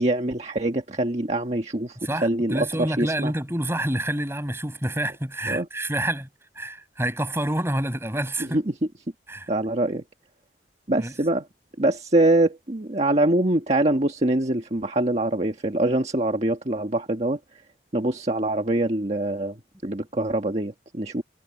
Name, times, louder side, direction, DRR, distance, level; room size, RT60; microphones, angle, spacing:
voice 1, 0.0-3.3 5.5-5.7 8.4-8.7 9.5-10.0 10.9-11.5 11.8-17.4 17.9-19.6 19.8-21.2, right 1 dB, 35° right, 1.5 m, -24 dB
voice 2, 2.0-6.3 6.6-8.6 9.3-9.5 11.0-11.1, right 1 dB, 15° right, 6.1 m, -28 dB
head